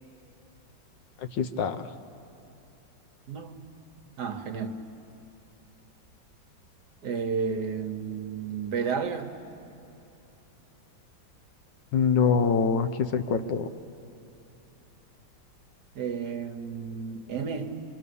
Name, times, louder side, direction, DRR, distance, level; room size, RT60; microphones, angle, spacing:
voice 1, 1.4-1.9 11.9-13.7, left 6 dB, 70° left, 8 dB, 1.5 m, -24 dB
voice 2, 3.3-3.7 4.2-4.8 7.0-9.3 15.9-17.8, right 6 dB, 60° right, 7 dB, 1.5 m, -32 dB
25.5 x 25.5 x 6.9 m, 2.7 s
omnidirectional pair, 2.1 m